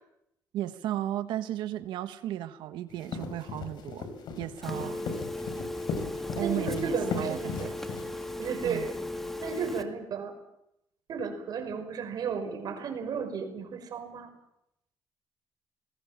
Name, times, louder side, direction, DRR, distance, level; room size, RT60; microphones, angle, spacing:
voice 1, 0.5-4.1 4.4-5.0 6.4-7.7 8.6-8.9, right 12 dB, 90° right, 11 dB, 1.4 m, -34 dB
sound 1, 2.9-8.3, left 5 dB, 70° left, 5.0 m, -37 dB
Telephone, 4.6-9.8, left 1 dB, 5° left, 2.1 m, -37 dB
voice 2, 4.7-5.3 6.4-7.7 8.4-8.9 9.4-10.3 11.1-14.3, right 5 dB, 55° right, 7 dB, 5.5 m, -34 dB
26.5 x 20.5 x 7.4 m, 0.81 s
cardioid pair, 120°, 8 cm